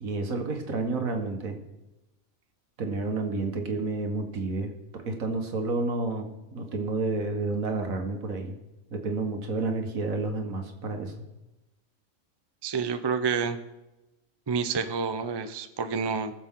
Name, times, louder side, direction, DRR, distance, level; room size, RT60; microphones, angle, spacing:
voice 1, 0.0-1.6 2.8-8.6 8.9-11.1, right 3 dB, 75° right, 4 dB, 1.9 m, -30 dB
voice 2, 12.6-13.6 14.5-16.3, right 5 dB, 40° right, 10 dB, 0.3 m, -28 dB
20.5 x 7.2 x 3.7 m, 1.0 s
omnidirectional pair, 1.5 m